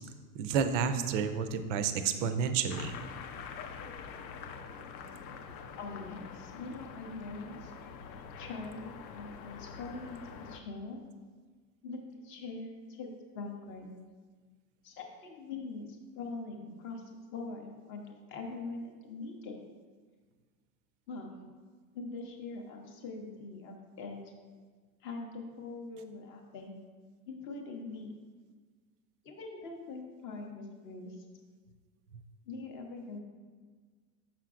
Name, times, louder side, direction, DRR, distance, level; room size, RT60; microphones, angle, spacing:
voice 1, 0.3-2.9, right 6 dB, 50° right, 9 dB, 0.5 m, -30 dB
sound 1, 2.7-10.6, left 6 dB, 80° left, 0.7 m, -45 dB
voice 2, 5.8-7.7 8.4-11.0 11.8-13.9 14.8-17.0 17.3-19.6 21.1-21.3 21.9-24.2 25.0-26.7 27.3-28.1 29.2-31.2 32.5-33.2, left 3 dB, 25° left, 2 dB, 0.5 m, -43 dB
6.7 x 5.8 x 2.4 m, 1.5 s
supercardioid pair, 140°, 50 cm